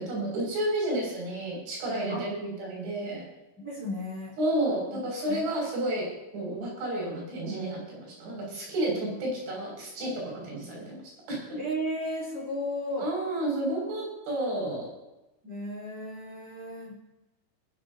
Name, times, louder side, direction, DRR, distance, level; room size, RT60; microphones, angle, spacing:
voice 1, 0.0-3.2 4.4-11.0 11.3-11.6 13.0-14.9, right 1 dB, 75° right, -2 dB, 9.0 m, -31 dB
voice 2, 3.6-4.4 4.9-5.0 5.3-5.4 11.6-13.1 15.4-17.0, equal, 30° right, -5 dB, 4.6 m, -34 dB
20.0 x 15.5 x 2.9 m, 0.98 s
omnidirectional pair, 5.5 m